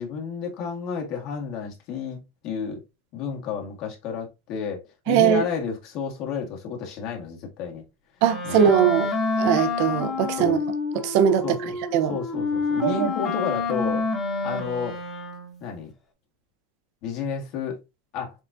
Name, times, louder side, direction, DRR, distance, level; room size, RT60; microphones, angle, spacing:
voice 1, 0.0-2.8 3.1-7.8 8.4-8.7 10.4-10.6 11.4-11.8 12.1-14.0 14.4-14.9 15.6-15.9 17.0-17.8 18.1-18.3, left 6 dB, 50° left, 1.6 m, -31 dB
voice 2, 5.1-5.4 8.2-9.1 9.4-10.6 10.9-11.4 11.9-12.1 12.8-13.1, right 9 dB, 60° right, 0.8 m, -20 dB
Wind instrument woodwind instrument, 8.2-15.7, left 4 dB, 30° left, 1.4 m, -28 dB
7.1 x 2.4 x 2.7 m
supercardioid pair, 125°, 0 cm